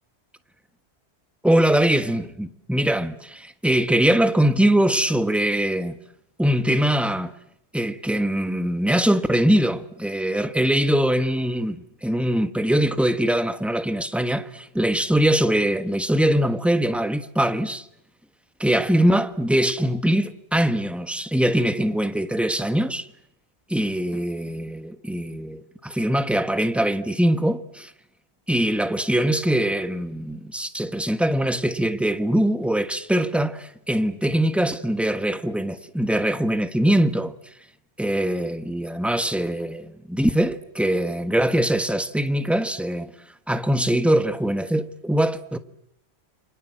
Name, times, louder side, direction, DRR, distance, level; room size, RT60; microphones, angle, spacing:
voice 1, 1.4-6.0 6.4-7.3 7.7-17.9 18.6-23.1 23.7-27.9 28.5-37.3 38.0-43.1 43.5-45.6, right 1 dB, ahead, 1.2 m, -22 dB
29.5 x 25.5 x 7.7 m
omnidirectional pair, 1.1 m